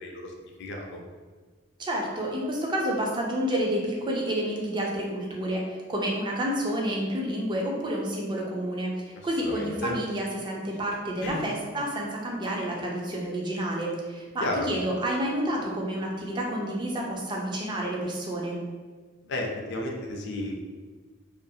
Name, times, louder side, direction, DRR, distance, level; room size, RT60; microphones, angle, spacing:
voice 1, 0.0-1.0 9.2-9.9 11.2-11.4 14.4-14.7 19.2-20.6, left 1 dB, 60° left, 0 dB, 0.4 m, -33 dB
voice 2, 1.8-8.9 9.2-18.6, right 1 dB, 25° right, -1 dB, 0.4 m, -29 dB
2.5 x 2.3 x 2.7 m, 1.4 s
head